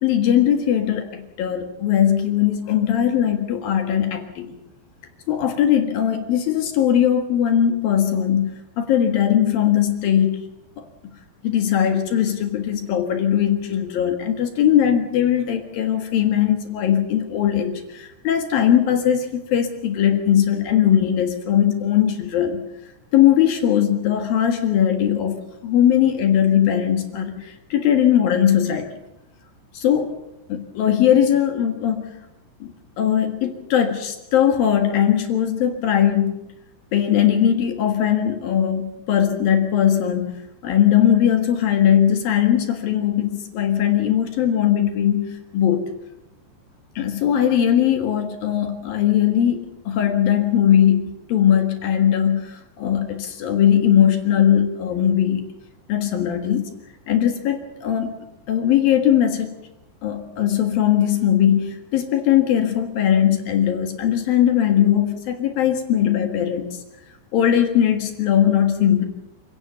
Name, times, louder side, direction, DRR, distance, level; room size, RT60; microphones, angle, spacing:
voice 1, 0.0-4.5 5.3-10.4 10.8-10.9 11.4-22.7 23.1-28.9 29.7-30.2 30.5-32.1 32.6-36.4 36.9-40.3 40.6-45.9 47.0-55.5 55.9-56.7 57.1-58.1 58.5-59.5 60.0-66.7 67.3-69.0, left 10 dB, 60° left, 6 dB, 2.9 m, -19 dB
27.5 x 17.0 x 6.9 m, 0.90 s
omnidirectional pair, 5.3 m